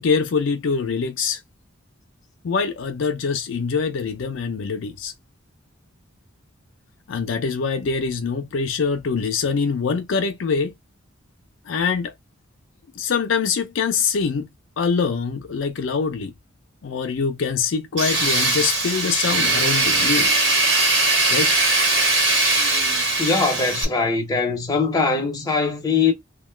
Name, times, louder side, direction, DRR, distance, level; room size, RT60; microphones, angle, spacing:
voice 1, 0.0-1.4 2.4-5.1 7.1-10.7 11.7-12.1 13.0-14.5 14.8-16.3 16.8-20.3 21.3-21.6, left 5 dB, 70° left, 0.4 m, -24 dB
Tools, 18.0-23.8, right 2 dB, 65° right, 1.2 m, -20 dB
voice 2, 23.2-26.1, left 4 dB, 20° left, 0.7 m, -21 dB
2.8 x 2.1 x 3.1 m
head